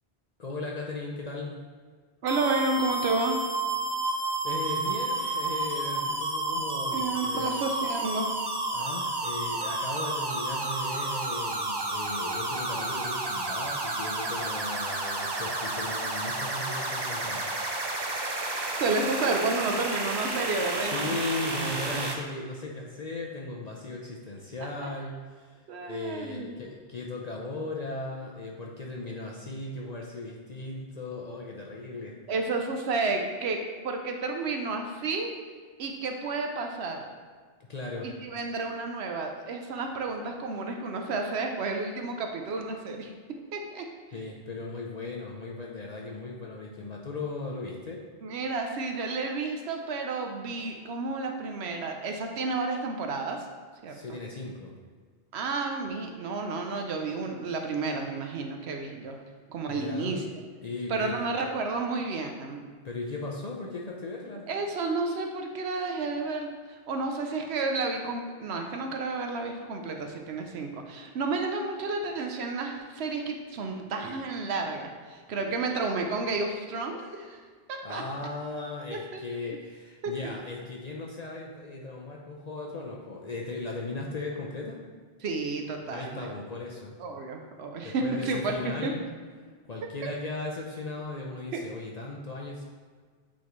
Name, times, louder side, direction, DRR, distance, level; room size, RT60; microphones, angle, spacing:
voice 1, 0.4-1.6 4.0-7.6 8.7-17.5 20.8-32.2 37.7-38.1 44.1-48.0 53.9-54.7 59.7-60.2 60.6-61.3 62.8-64.5 77.8-84.8 85.9-86.9 87.8-89.0 89.7-92.6, left 2 dB, 45° left, -2 dB, 0.7 m, -37 dB
voice 2, 2.2-3.4 6.9-8.4 18.5-21.1 24.8-24.9 25.7-26.5 32.3-35.3 35.8-37.1 38.2-43.1 43.5-43.8 44.1-44.2 48.2-53.4 53.8-54.2 55.3-59.2 59.5-60.4 60.9-62.6 64.5-77.4 77.7-78.0 78.9-79.2 80.0-80.3 85.2-86.3 87.0-88.9 90.0-90.1 91.5-91.6, right 3 dB, 85° right, 3 dB, 0.9 m, -31 dB
sound 1, 2.3-22.1, right 2 dB, 30° right, 0.5 m, -31 dB
8.3 x 3.8 x 3.1 m, 1.6 s
omnidirectional pair, 1.1 m